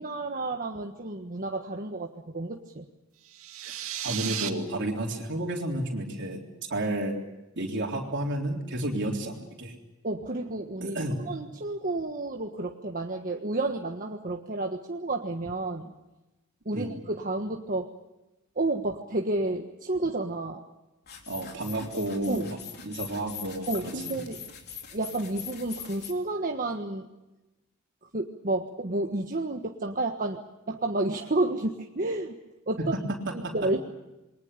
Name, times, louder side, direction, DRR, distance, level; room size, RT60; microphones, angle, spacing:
voice 1, 0.0-2.9 10.0-15.9 16.6-17.9 18.5-20.6 22.3-22.5 23.7-24.5 24.9-27.1 28.1-30.4 30.7-32.3 32.7-32.8 33.3-33.8, right 2 dB, 40° right, 2 dB, 1.5 m, -31 dB
sound 1, 3.2-4.5, right 11 dB, 80° right, 2.4 m, -34 dB
voice 2, 4.0-6.4 6.7-7.2 7.6-9.8 10.8-11.2 16.7-17.0 21.3-24.2 32.8-33.7, right 1 dB, 60° right, 0 dB, 3.8 m, -31 dB
sound 2, 21.1-26.1, left 8 dB, 50° left, 3.7 m, -42 dB
28.5 x 22.5 x 6.8 m, 1.0 s
head